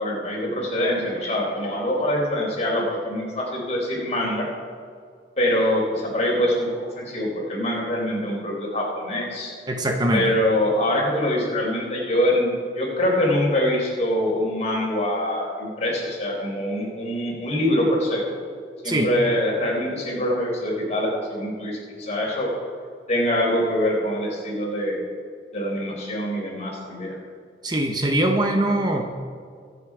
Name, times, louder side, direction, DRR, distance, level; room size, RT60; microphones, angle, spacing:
voice 1, 0.0-4.5 5.4-6.7 7.0-9.5 10.1-18.2 18.8-22.5 23.1-25.0 25.5-27.2, left 1 dB, 40° left, -2 dB, 4.3 m, -24 dB
voice 2, 9.7-10.3 18.8-19.1 27.6-29.2, right 1 dB, 25° right, 3 dB, 0.9 m, -22 dB
24.5 x 8.4 x 4.9 m, 2.1 s
head